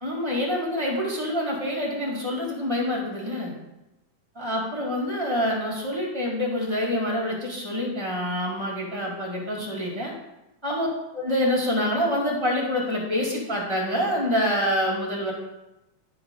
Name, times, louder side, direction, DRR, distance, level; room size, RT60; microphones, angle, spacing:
voice 1, 0.0-3.5 4.4-10.1 10.6-10.9 11.2-15.3, left 1 dB, 10° right, -3 dB, 1.7 m, -26 dB
11.0 x 4.0 x 5.4 m, 0.95 s
omnidirectional pair, 3.4 m